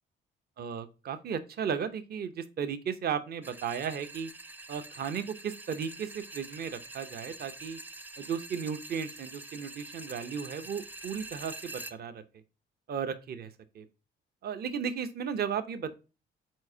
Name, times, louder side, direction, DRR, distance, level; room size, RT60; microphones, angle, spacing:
voice 1, 0.6-4.3 4.7-7.8 8.2-12.2 12.9-13.8 14.4-15.9, right 7 dB, 50° right, 11 dB, 0.7 m, -35 dB
sound 1, 3.4-11.9, right 2 dB, 10° right, 0.5 m, -46 dB
4.6 x 4.2 x 2.7 m, 0.30 s
cardioid pair, 90°, 20 cm